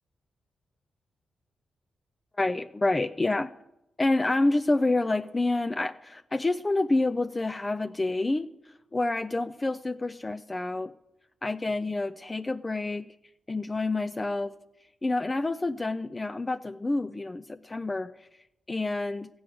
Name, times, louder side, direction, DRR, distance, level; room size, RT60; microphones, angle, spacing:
voice 1, 2.4-3.5 4.0-10.9 11.4-13.1 13.5-14.5 15.0-19.3, left 2 dB, 25° left, 10 dB, 0.4 m, -28 dB
14.0 x 6.3 x 9.8 m, 0.91 s
cardioid pair, 70°, 0 cm